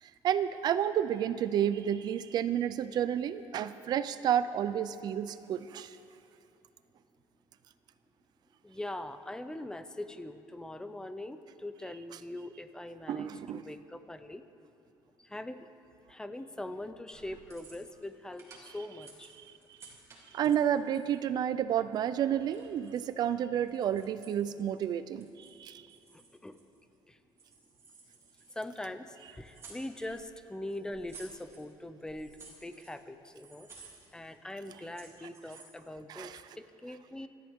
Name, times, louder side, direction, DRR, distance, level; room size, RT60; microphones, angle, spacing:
voice 1, 0.0-6.0 13.1-13.7 19.4-19.5 19.8-19.9 20.3-25.8 36.1-36.4, right 9 dB, 45° right, 13 dB, 0.5 m, -31 dB
voice 2, 8.6-14.4 15.2-15.6 16.1-19.3 20.4-20.5 26.1-26.6 27.1-27.2 28.6-32.3 32.6-33.7 34.1-37.3, left 1 dB, 5° left, 9 dB, 0.6 m, -42 dB
sound 1, 17.1-18.1 18.3-21.2 21.8-23.1 23.5-24.8 25.2-25.6 25.9-27.0 27.4-28.9 29.1-30.3 30.7-31.7 32.0-33.0 33.3-34.4 34.6-35.8, right 4 dB, 30° right, 3.1 m, -55 dB
26.0 x 13.5 x 3.6 m, 2.8 s
cardioid pair, 165°, 10 cm